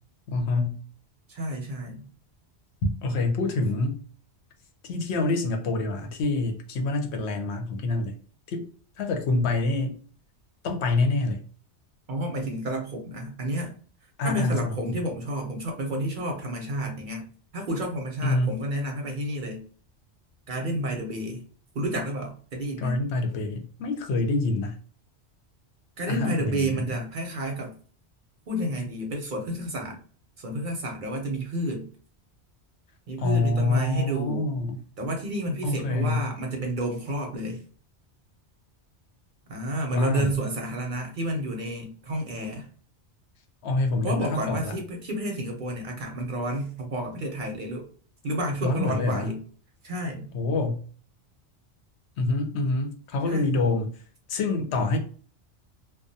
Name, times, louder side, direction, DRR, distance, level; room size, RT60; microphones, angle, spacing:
voice 1, 0.3-0.8 2.8-4.0 4.8-8.1 8.5-8.6 9.0-10.0 10.6-11.4 14.2-15.0 18.2-18.6 22.8-24.7 26.1-26.7 33.2-34.8 35.6-36.3 39.9-40.3 43.6-44.7 48.6-49.3 50.3-50.8 52.2-53.9 54.3-55.0, left 2 dB, 75° left, 4 dB, 0.9 m, -26 dB
voice 2, 1.3-2.1 12.1-13.7 14.2-17.2 17.5-19.6 20.5-21.4 21.7-23.0 26.0-27.7 28.5-30.0 30.4-31.9 33.1-34.5 35.0-37.6 39.5-42.7 44.0-47.9 48.2-49.4 49.8-50.3 53.3-53.6, right 1 dB, 55° right, 2 dB, 0.7 m, -30 dB
2.3 x 2.1 x 2.6 m, 0.43 s
omnidirectional pair, 1.1 m